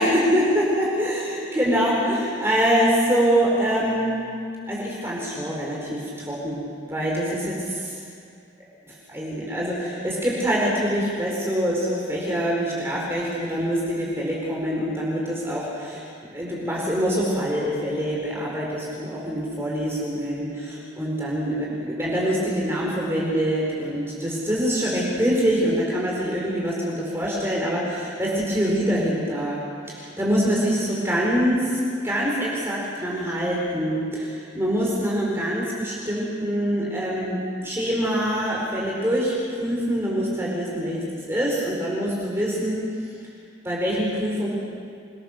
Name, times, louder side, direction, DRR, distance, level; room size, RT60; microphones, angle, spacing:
voice 1, 0.0-4.2 4.7-6.6 6.9-7.9 8.9-29.6 29.9-39.3 39.6-42.8 43.6-44.5, equal, 15° right, -4 dB, 4.7 m, -24 dB
28.0 x 21.5 x 6.8 m, 2.3 s
head